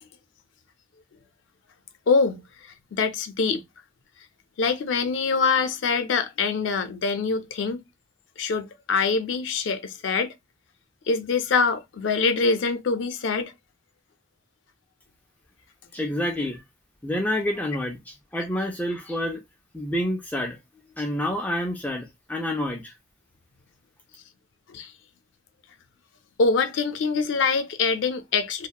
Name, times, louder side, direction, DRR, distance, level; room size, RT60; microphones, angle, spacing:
voice 1, 2.1-2.4 2.9-3.6 4.6-7.8 8.4-10.3 11.1-13.5 24.7-24.9 26.4-28.7, left 4 dB, 80° left, 0.4 m, -24 dB
voice 2, 15.9-16.6 17.0-19.4 19.7-20.6 21.0-22.9, left 1 dB, 10° left, 0.4 m, -28 dB
2.7 x 2.0 x 2.2 m
head